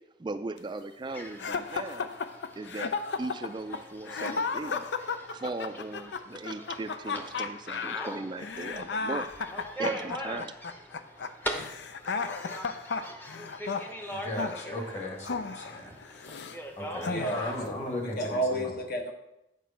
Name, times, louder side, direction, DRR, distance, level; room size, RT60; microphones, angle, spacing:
voice 1, 0.2-2.1 2.6-2.9 3.2-4.9 5.3-9.3 9.5-10.5, right 3 dB, 25° right, 9 dB, 0.3 m, -37 dB
sound 1, 1.1-17.6, equal, 10° left, 0.8 m, -42 dB
sound 2, 1.4-16.6 17.0-17.7, left 5 dB, 80° left, 0.5 m, -34 dB
voice 2, 14.1-15.9 16.8-18.2 18.5-18.7, left 1 dB, 40° left, 1 dB, 1.7 m, -36 dB
voice 3, 17.1-19.1, right 1 dB, 55° left, 4 dB, 1.1 m, -32 dB
8.3 x 5.1 x 5.7 m, 0.88 s
head